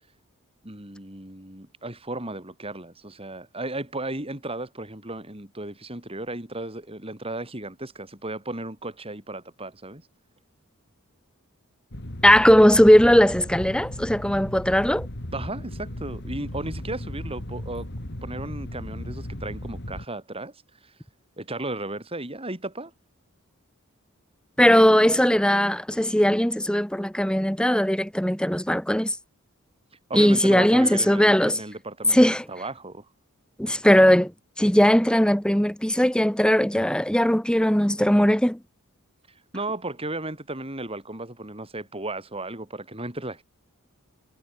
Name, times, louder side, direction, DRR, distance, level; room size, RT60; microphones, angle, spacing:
voice 1, 0.6-10.0 15.3-17.9 18.2-20.5 20.8-20.9 21.4-22.9 30.1-33.1 39.5-43.4, right 2 dB, 25° right, 5.3 m, -35 dB
sound 1, 11.9-20.1, left 1 dB, 50° left, 3.1 m, -36 dB
voice 2, 12.2-15.1 24.6-29.2 30.1-31.6 32.1-32.4 33.6-34.3 34.6-38.6, equal, 5° left, 2.0 m, -19 dB
head